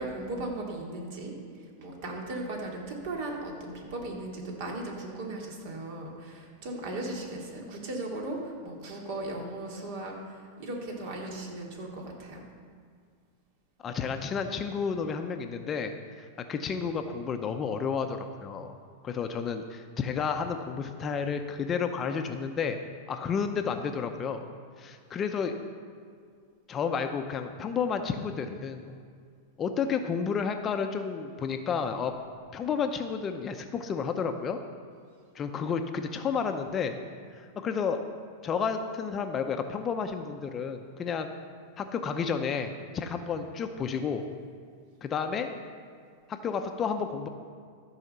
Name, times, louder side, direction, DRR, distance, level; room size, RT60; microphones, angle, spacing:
voice 1, 0.0-12.4, right 2 dB, 60° right, 0 dB, 2.5 m, -37 dB
voice 2, 13.8-18.8 19.0-22.8 23.1-24.5 24.8-25.5 26.7-28.9 29.6-32.1 32.5-34.6 35.3-37.0 37.3-38.0 38.4-41.3 41.8-44.2 45.0-45.5 46.3-47.3, left 6 dB, 25° left, 6 dB, 0.7 m, -31 dB
14.0 x 4.9 x 6.7 m, 2.1 s
supercardioid pair, 140°, 0 cm